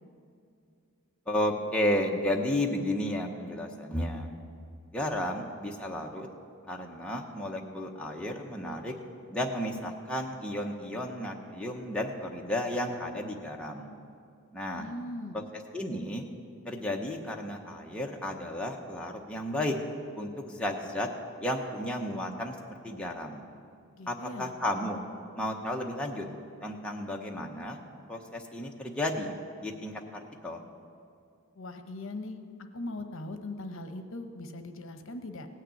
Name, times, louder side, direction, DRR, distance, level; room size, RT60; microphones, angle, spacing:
voice 1, 1.3-4.3 4.9-6.3 6.7-8.9 9.3-13.9 14.5-14.9 15.3-15.4 15.7-16.2 16.6-19.7 20.2-21.1 21.4-22.5 22.8-23.4 24.1-25.0 25.3-26.2 26.6-27.8 28.1-29.3 29.6-30.6, left 1 dB, 5° left, -1 dB, 0.9 m, -33 dB
voice 2, 14.7-15.5 23.9-24.5 31.5-32.4 32.7-35.5, left 2 dB, 65° left, 7 dB, 0.9 m, -40 dB
17.0 x 6.6 x 9.0 m, 2.4 s
head